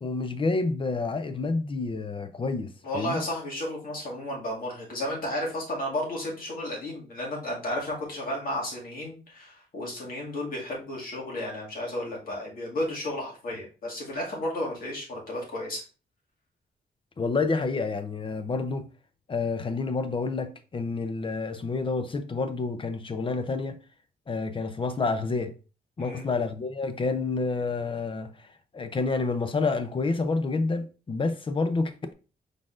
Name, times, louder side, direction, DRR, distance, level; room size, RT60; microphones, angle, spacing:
voice 1, 0.0-3.2 17.2-18.9 19.3-23.8 24.3-25.5 26.0-28.3 28.7-32.1, left 3 dB, 30° left, 0.6 m, -29 dB
voice 2, 2.8-15.8 26.0-26.2, left 1 dB, 60° left, 2.1 m, -33 dB
5.0 x 4.0 x 2.5 m
wide cardioid pair, 120°, 16 cm